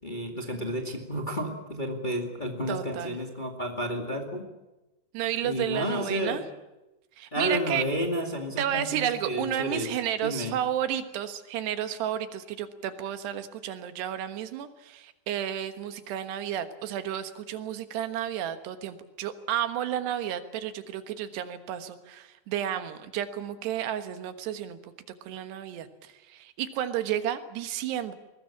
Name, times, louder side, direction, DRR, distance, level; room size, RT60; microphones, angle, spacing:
voice 1, 0.0-4.4 5.4-6.4 7.3-9.9 10.2-10.5, equal, 20° left, 2 dB, 1.2 m, -31 dB
voice 2, 2.7-3.2 5.1-6.4 7.2-7.9 8.6-24.9 25.3-28.1, right 10 dB, 80° right, 9 dB, 3.5 m, -32 dB
22.0 x 19.0 x 8.6 m, 1.0 s
omnidirectional pair, 4.8 m